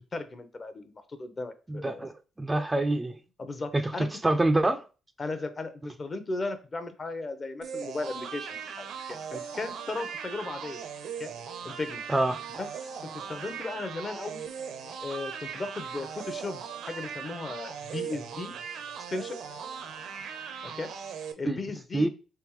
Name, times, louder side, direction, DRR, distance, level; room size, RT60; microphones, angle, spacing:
voice 1, 0.0-2.1 3.4-4.1 5.2-10.9 11.2-11.3 11.6-12.0 12.5-14.5 15.0-18.5 19.1-19.4 20.6-20.9 21.4-22.1, left 3 dB, 35° left, 0.7 m, -36 dB
voice 2, 1.7-2.1 2.4-3.2 3.7-4.8 12.1-12.4 21.5-21.6 21.9-22.1, right 2 dB, 15° right, 0.3 m, -26 dB
sound 1, 7.6-21.3, right 7 dB, 75° right, 0.5 m, -39 dB
3.5 x 3.4 x 3.1 m
cardioid pair, 90°, 0 cm